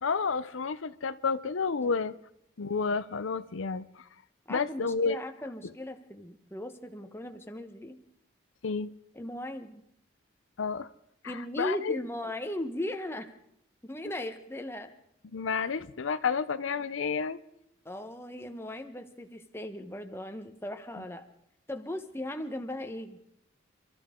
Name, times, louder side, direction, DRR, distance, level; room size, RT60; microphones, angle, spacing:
voice 1, 0.0-2.2 2.6-4.0 4.5-5.2 8.6-8.9 10.6-10.9 11.2-12.0 15.3-17.4, left 5 dB, 80° left, 0.6 m, -30 dB
voice 2, 4.5-8.0 9.1-9.9 11.2-13.3 13.8-14.9 17.8-21.3 21.7-23.2, left 1 dB, 10° left, 1.1 m, -38 dB
28.5 x 13.5 x 3.7 m
head